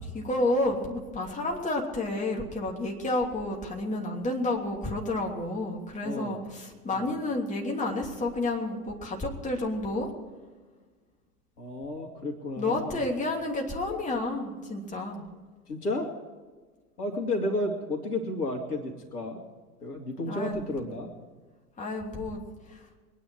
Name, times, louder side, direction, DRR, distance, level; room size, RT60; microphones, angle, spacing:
voice 1, 0.0-10.1 12.6-15.2 20.3-20.6 21.8-22.4 22.6-22.9, left 2 dB, 15° left, -1 dB, 3.0 m, -30 dB
voice 2, 6.0-6.4 6.9-7.2 11.6-13.0 15.7-16.1 17.0-19.4 19.8-21.1, left 1 dB, 75° left, 3 dB, 2.6 m, -32 dB
23.5 x 10.0 x 4.7 m, 1.4 s
figure-of-eight pair, 90°, 46 cm